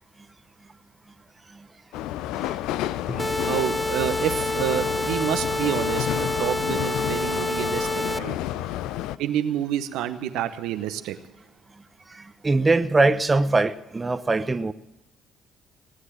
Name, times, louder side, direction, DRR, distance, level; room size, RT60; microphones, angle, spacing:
sound 1, 1.9-9.2, left 13 dB, 70° left, 0.5 m, -30 dB
Drum, 3.1-7.1, left 3 dB, 30° left, 2.8 m, -42 dB
sound 2, 3.2-8.2, equal, ahead, 0.4 m, -28 dB
voice 1, 3.5-8.4 9.2-11.2, right 10 dB, 70° right, 10 dB, 0.8 m, -28 dB
voice 2, 12.1-14.7, right 3 dB, 25° right, 13 dB, 0.9 m, -22 dB
18.5 x 9.6 x 7.4 m, 0.94 s
hypercardioid pair, 50°, 0 cm